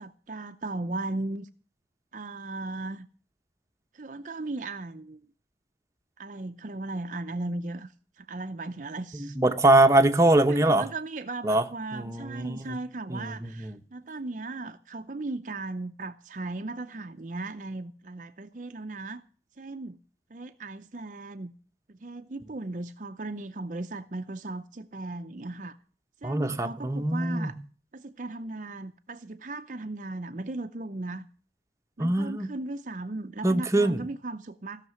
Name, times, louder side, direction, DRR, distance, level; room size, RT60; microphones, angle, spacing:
voice 1, 0.0-1.5 2.1-3.1 3.9-5.2 6.2-9.4 10.5-19.2 19.6-20.0 20.3-21.5 21.9-25.8 26.2-27.6 27.9-31.3 32.0-34.9, right 2 dB, 45° right, 0.6 m, -37 dB
voice 2, 9.1-10.9 11.4-11.6 11.9-12.8 13.1-13.8 26.2-27.5 32.0-32.5 33.4-34.1, right 2 dB, 15° right, 0.9 m, -23 dB
16.0 x 6.6 x 9.4 m
head